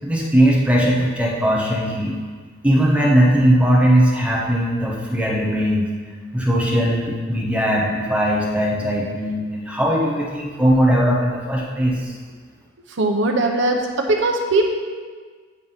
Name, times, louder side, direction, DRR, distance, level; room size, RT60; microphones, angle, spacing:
voice 1, 0.0-2.2 2.6-5.9 6.3-12.1, equal, 5° right, -3 dB, 1.0 m, -19 dB
voice 2, 13.0-14.6, right 2 dB, 70° right, 2 dB, 0.8 m, -19 dB
9.4 x 3.6 x 5.6 m, 1.5 s
head